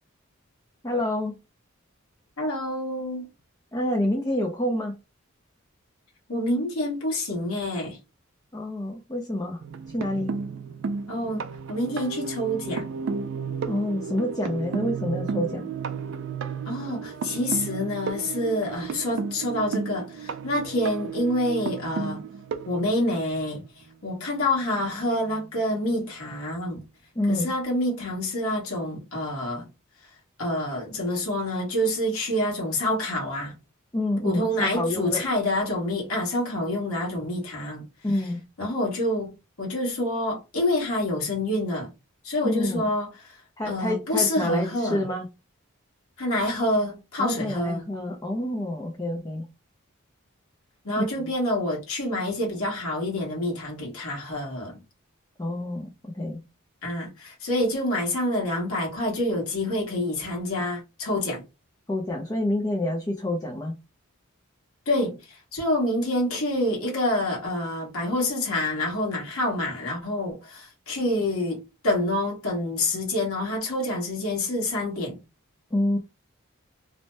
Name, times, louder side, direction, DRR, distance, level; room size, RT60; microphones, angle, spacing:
voice 1, 0.8-1.4 3.7-5.0 8.5-9.6 9.9-10.3 13.7-15.7 27.2-27.5 33.9-35.2 38.0-38.4 42.4-42.9 43.6-45.3 47.2-49.4 51.0-51.1 55.4-55.9 56.1-56.4 61.9-63.7 75.7-76.0, left 1 dB, 15° left, 0.4 m, -27 dB
voice 2, 2.4-3.3 6.3-8.0 11.1-12.9 16.7-22.2 22.6-23.6 24.0-26.8 27.3-29.7 30.4-33.6 34.2-37.9 38.6-41.9 42.2-43.4 43.7-45.0 46.2-47.8 50.8-54.8 56.8-61.4 64.9-75.2, left 1 dB, 80° left, 1.2 m, -27 dB
sound 1, 9.6-23.6 24.8-24.9 25.3-25.4, right 5 dB, 60° right, 0.3 m, -33 dB
2.6 x 2.1 x 3.2 m
head